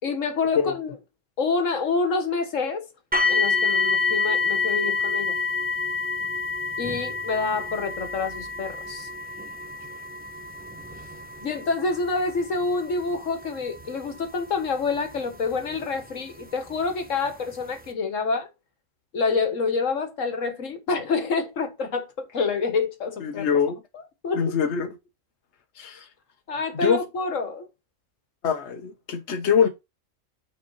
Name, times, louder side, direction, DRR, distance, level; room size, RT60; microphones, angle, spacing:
voice 1, 0.0-0.9 1.4-2.9 3.3-5.4 6.8-9.1 11.4-18.5 19.1-23.5 23.9-24.6 26.5-27.7, left 4 dB, 75° left, 1.7 m, -27 dB
sound 1, 3.1-16.0 16.8-16.9 17.5-17.6, left 4 dB, 10° right, 0.7 m, -28 dB
voice 2, 23.2-23.8 24.3-24.9 25.8-26.1 26.7-27.0 28.4-29.7, left 7 dB, 60° left, 1.3 m, -23 dB
9.4 x 4.5 x 4.0 m
omnidirectional pair, 1.3 m